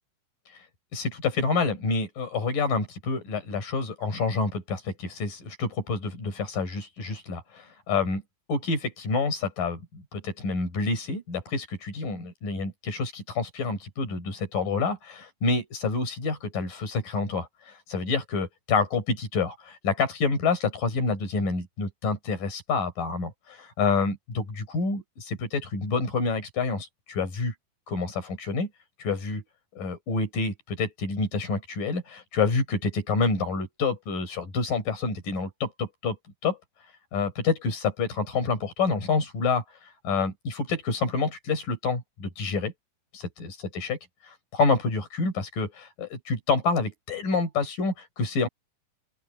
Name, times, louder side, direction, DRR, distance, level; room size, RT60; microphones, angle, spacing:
voice 1, 0.9-8.2 8.5-27.5 27.9-28.7 29.0-29.4 29.8-36.2 36.4-36.6 37.1-42.7 43.1-44.0 44.2-48.5, left 4 dB, 65° left, 7.7 m, -28 dB
open air
omnidirectional pair, 4.1 m